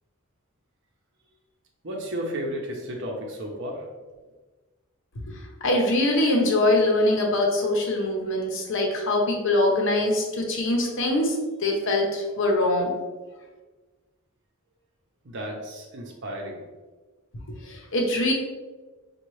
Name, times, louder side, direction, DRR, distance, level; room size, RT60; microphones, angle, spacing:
voice 1, 1.8-3.9 15.2-16.6, equal, 60° right, 1 dB, 0.8 m, -33 dB
voice 2, 5.3-12.9 17.5-18.3, left 1 dB, 60° left, 1 dB, 0.8 m, -23 dB
5.6 x 2.3 x 3.1 m, 1.3 s
head